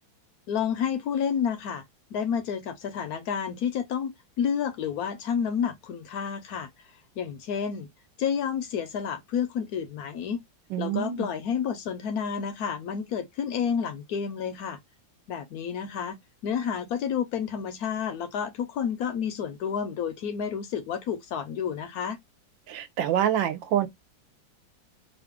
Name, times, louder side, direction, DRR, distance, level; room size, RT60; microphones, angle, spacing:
voice 1, 0.5-1.8 2.1-6.7 7.2-7.9 8.2-10.4 10.8-14.8 15.3-16.2 16.4-22.2, left 7 dB, 70° left, 0.9 m, -30 dB
voice 2, 10.7-11.3 22.7-23.9, right 10 dB, 80° right, 1.3 m, -26 dB
3.1 x 2.5 x 3.5 m
omnidirectional pair, 2.1 m